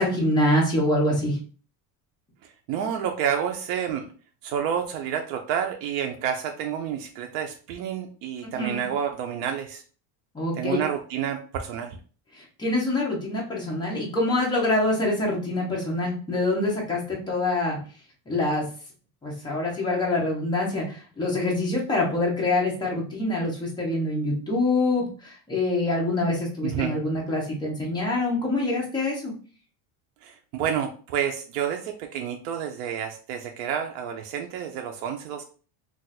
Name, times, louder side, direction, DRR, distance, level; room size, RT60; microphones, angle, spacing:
voice 1, 0.0-1.4 8.6-8.8 10.3-10.8 12.4-17.8 18.3-18.7 19.2-29.3, left 2 dB, 10° left, -3 dB, 0.6 m, -25 dB
voice 2, 2.4-4.1 4.4-9.8 10.6-12.0 26.6-27.0 30.2-35.4, right 8 dB, 60° right, 3 dB, 0.5 m, -29 dB
2.4 x 2.3 x 4.0 m, 0.39 s
cardioid pair, 170°, 48 cm